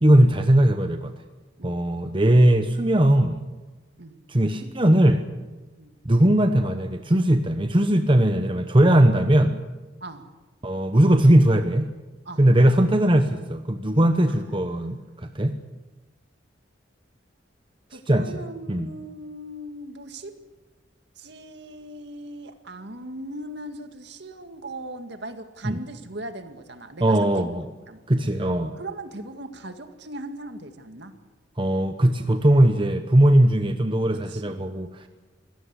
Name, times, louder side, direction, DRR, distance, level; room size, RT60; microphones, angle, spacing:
voice 1, 0.0-1.1 1.6-3.4 4.3-5.2 6.0-9.6 10.6-11.9 12.4-15.6 18.1-18.4 18.7-18.9 25.6-25.8 27.0-27.6 28.1-28.7 31.6-35.1, right 1 dB, 25° right, 7 dB, 1.1 m, -19 dB
voice 2, 17.9-20.3 21.2-27.6 27.9-28.0 28.7-31.1 34.1-34.7, right 1 dB, 60° right, 7 dB, 2.1 m, -39 dB
24.5 x 17.0 x 8.3 m, 1.2 s
head